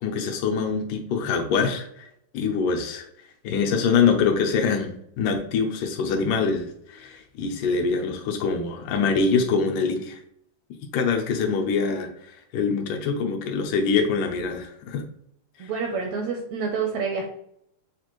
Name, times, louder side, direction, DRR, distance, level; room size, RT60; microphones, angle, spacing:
voice 1, 0.0-2.1 2.3-3.1 3.4-10.2 10.9-15.0 15.6-15.7, left 5 dB, 85° left, 3 dB, 2.3 m, -24 dB
voice 2, 15.6-17.3, right 5 dB, 80° right, 2 dB, 1.6 m, -28 dB
6.7 x 2.5 x 3.0 m, 0.72 s
omnidirectional pair, 3.6 m